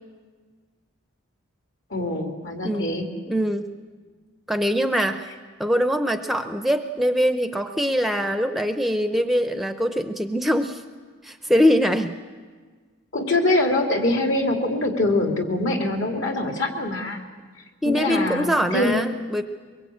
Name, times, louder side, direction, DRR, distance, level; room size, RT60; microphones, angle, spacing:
voice 1, 1.9-3.1 13.1-17.2 17.8-19.0, left 2 dB, 65° left, 3 dB, 2.9 m, -24 dB
voice 2, 2.6-3.0 3.3-3.7 4.5-5.3 5.6-10.8 11.2-12.1 17.8-19.4, equal, ahead, 7 dB, 0.6 m, -23 dB
23.0 x 22.5 x 8.6 m, 1.5 s
head